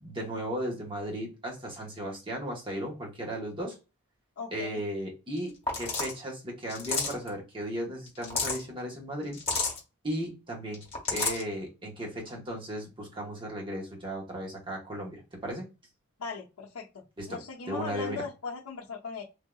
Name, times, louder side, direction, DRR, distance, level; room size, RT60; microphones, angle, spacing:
voice 1, 0.0-3.8 4.5-9.4 10.0-10.8 11.1-15.7 17.2-18.2, equal, 25° right, 1.1 m, -36 dB
voice 2, 4.4-4.8 16.2-16.9 17.3-19.2, left 5 dB, 85° left, 0.6 m, -38 dB
sound 1, 5.4-5.5 5.7-6.2 6.7-7.3 8.1-8.6 9.3-9.8 10.7-11.4, left 4 dB, 30° left, 1.5 m, -30 dB
3.3 x 2.7 x 2.3 m
head